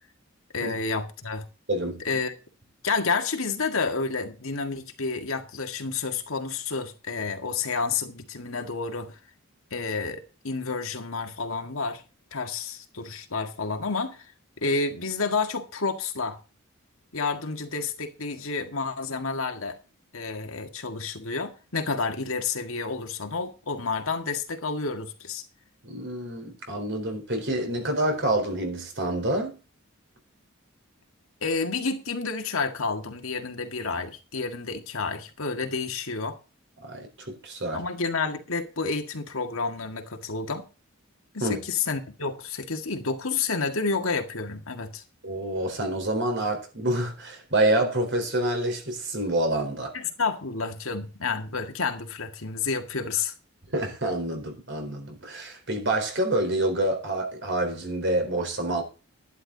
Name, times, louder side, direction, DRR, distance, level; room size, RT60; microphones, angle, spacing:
voice 1, 0.5-1.5 2.0-2.3 2.8-9.2 9.7-12.0 12.3-14.3 14.6-16.4 17.1-19.8 20.1-25.4 31.4-36.4 37.7-40.6 41.3-45.0 49.9-53.3, left 4 dB, 75° left, 1.9 m, -30 dB
voice 2, 1.7-2.0 25.8-29.6 36.8-37.8 41.4-41.6 45.2-49.9 53.7-58.8, right 1 dB, 55° right, 4.1 m, -27 dB
11.5 x 11.0 x 4.0 m
head